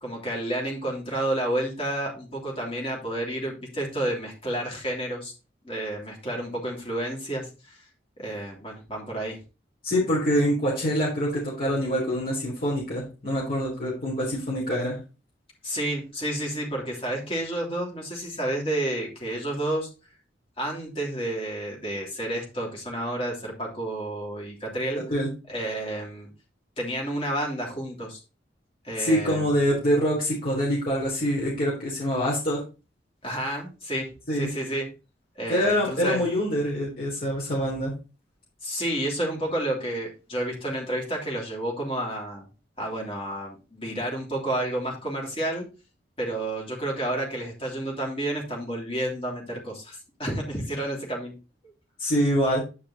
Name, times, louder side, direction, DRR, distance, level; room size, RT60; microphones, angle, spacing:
voice 1, 0.0-5.3 5.6-7.8 8.2-9.4 15.6-19.9 20.6-25.0 25.5-26.3 26.8-28.2 28.8-29.5 33.2-34.1 34.3-34.9 35.3-36.2 38.6-42.5 42.8-45.6 46.2-51.3 51.6-51.7, right 1 dB, 30° left, -2 dB, 3.0 m, -30 dB
voice 2, 9.8-15.0 25.1-25.3 29.0-32.6 34.3-34.5 35.5-37.9 52.0-52.6, equal, 50° left, -6 dB, 3.6 m, -25 dB
9.4 x 5.2 x 4.1 m, 0.31 s
head